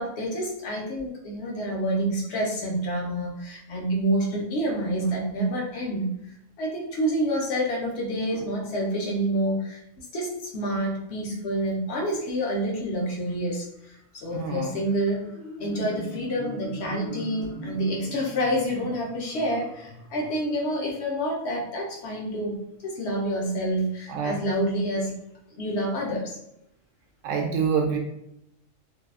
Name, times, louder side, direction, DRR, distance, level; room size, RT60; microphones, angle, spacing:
voice 1, 0.0-6.1 6.6-15.2 15.6-22.6 22.8-25.1 25.6-26.4, right 1 dB, 65° left, -2 dB, 0.9 m, -28 dB
voice 2, 14.3-14.8 24.1-24.3 27.2-28.0, right 6 dB, 85° right, 3 dB, 1.0 m, -27 dB
Marimba xylophone, 15.2-20.8, left 1 dB, 35° left, 0.7 m, -40 dB
2.7 x 2.3 x 2.3 m, 0.80 s
omnidirectional pair, 1.3 m